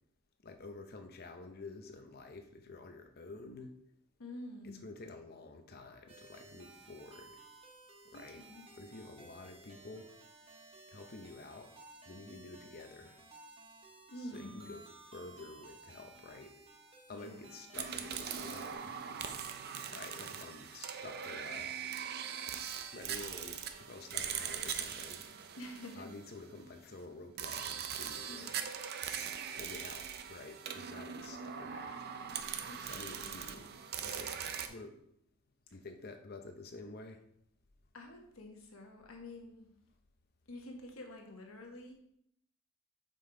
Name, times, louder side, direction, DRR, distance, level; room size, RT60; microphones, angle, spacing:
voice 1, 0.4-3.7 4.8-7.4 8.0-8.4 8.8-10.1 10.9-11.7 12.1-13.2 14.3-16.5 17.1-19.0 19.9-21.8 22.9-25.2 26.0-28.6 29.5-32.0 32.8-34.4 34.7-35.0 35.7-37.2, left 3 dB, 45° left, 5 dB, 0.7 m, -49 dB
voice 2, 4.2-4.8 8.1-8.7 14.1-14.7 17.1-17.6 25.6-26.1 28.3-28.5 32.7-33.6 37.9-39.7 40.5-41.9, left 1 dB, 75° left, 2 dB, 1.2 m, -48 dB
sound 1, 6.1-18.8, right 2 dB, 25° right, 0.9 m, -57 dB
sound 2, 17.7-26.6 27.4-34.7, right 8 dB, 50° right, 0.5 m, -41 dB
5.7 x 5.3 x 3.8 m, 0.73 s
head